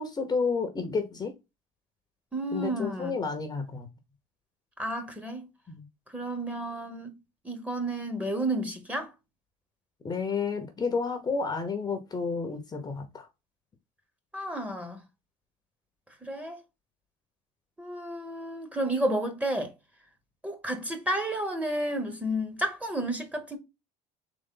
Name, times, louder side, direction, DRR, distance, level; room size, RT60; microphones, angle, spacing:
voice 1, 0.0-1.3 2.5-3.9 5.7-5.9 10.0-13.3, left 4 dB, 25° left, 0.9 m, -31 dB
voice 2, 2.3-3.1 4.8-5.5 6.1-7.2 7.4-9.1 14.3-15.0 16.2-16.6 17.8-19.7 20.4-23.6, right 1 dB, 10° right, 1.2 m, -31 dB
3.9 x 3.0 x 3.8 m
supercardioid pair, 105°, 16 cm